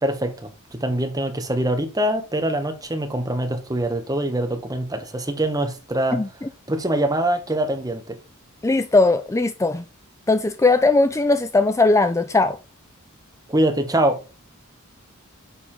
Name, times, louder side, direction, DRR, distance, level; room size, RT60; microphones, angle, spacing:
voice 1, 0.0-6.2 6.7-8.2 13.5-14.2, right 1 dB, 15° right, 1.3 m, -24 dB
voice 2, 8.6-9.8 10.3-12.6, left 3 dB, 15° left, 0.4 m, -18 dB
7.1 x 5.4 x 4.3 m
head